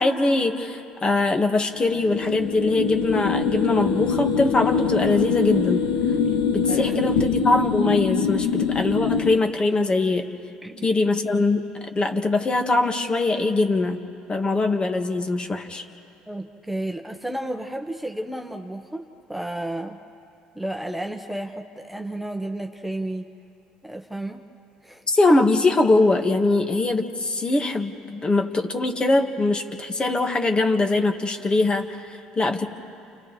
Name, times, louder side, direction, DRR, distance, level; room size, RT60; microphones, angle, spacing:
voice 1, 0.0-5.8 6.5-10.3 10.8-11.7 11.9-14.0 14.3-15.8 25.1-32.7, left 2 dB, 30° left, 5 dB, 1.7 m, -22 dB
sound 1, 1.8-9.4, left 6 dB, 85° left, 1.0 m, -24 dB
voice 2, 6.7-7.1 10.6-10.9 16.3-20.0 20.5-23.3 23.8-24.4 24.8-25.0, right 1 dB, 5° right, 3 dB, 1.2 m, -32 dB
29.5 x 29.0 x 3.3 m, 2.8 s
hypercardioid pair, 70°, 3 cm